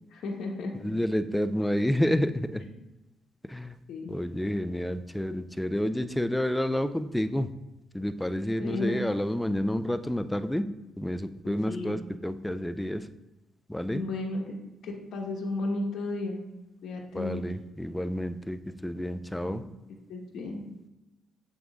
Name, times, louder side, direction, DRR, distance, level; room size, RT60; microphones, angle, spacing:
voice 1, 0.1-0.7 3.9-4.1 8.6-9.0 11.4-11.9 13.9-14.4 14.8-16.4 16.8-17.4 19.4-19.6 20.1-20.6, left 2 dB, 65° left, 0 dB, 1.2 m, -33 dB
voice 2, 0.7-2.6 3.5-3.8 4.1-7.5 7.9-10.7 11.0-13.1 13.7-14.0 17.1-19.6, left 1 dB, 5° left, 10 dB, 0.4 m, -29 dB
7.4 x 3.7 x 3.6 m, 0.99 s
cardioid pair, 90°, 0 cm